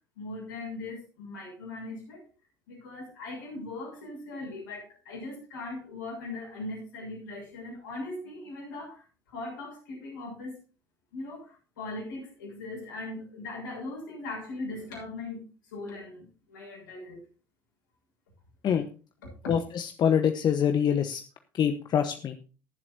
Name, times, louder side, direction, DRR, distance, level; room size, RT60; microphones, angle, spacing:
voice 1, 0.2-2.3 2.7-10.6 11.1-15.4 15.7-17.2 19.2-19.5, left 2 dB, 80° left, -2 dB, 6.6 m, -39 dB
voice 2, 19.5-21.2 21.5-22.4, left 8 dB, 45° left, 7 dB, 1.1 m, -25 dB
23.0 x 7.6 x 2.7 m, 0.34 s
figure-of-eight pair, 60°, 10 cm